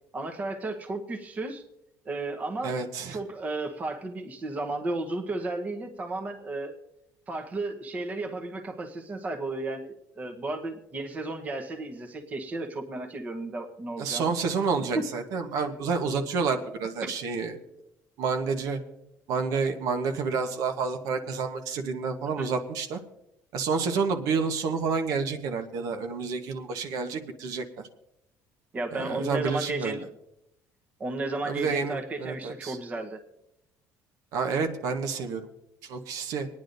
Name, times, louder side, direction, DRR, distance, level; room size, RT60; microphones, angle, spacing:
voice 1, 0.1-1.6 2.0-2.8 3.1-6.7 7.3-14.3 14.9-15.0 17.0-17.1 22.4-22.5 28.7-30.0 31.0-33.2, right 2 dB, 25° right, 4 dB, 1.0 m, -33 dB
voice 2, 2.6-3.2 14.0-17.6 18.2-18.8 19.3-23.0 23.5-27.6 28.9-30.0 31.4-32.8 34.3-35.4 35.8-36.5, right 5 dB, 70° right, 6 dB, 1.1 m, -29 dB
25.5 x 9.8 x 2.6 m, 0.85 s
cardioid pair, 160°, 6 cm